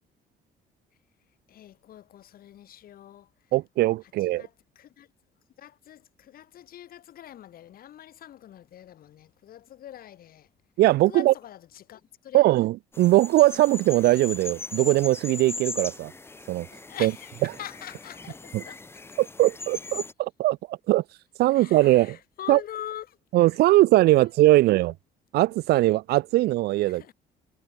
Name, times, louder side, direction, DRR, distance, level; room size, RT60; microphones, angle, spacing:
voice 1, 1.5-3.3 4.3-5.1 5.6-10.5 11.1-12.6 16.9-18.8 21.5-23.5 24.5-24.9 26.9-27.1, left 11 dB, 60° left, 4.2 m, -43 dB
voice 2, 3.5-4.5 10.8-11.3 12.3-16.1 16.5-16.7 17.0-17.1 18.5-18.6 19.2-21.0 21.4-22.2 22.5-22.6 23.3-24.9 25.3-27.0, right 17 dB, 70° right, 0.5 m, -20 dB
sound 1, 12.9-20.1, left 3 dB, 15° left, 0.9 m, -39 dB
cardioid pair, 110°, 17 cm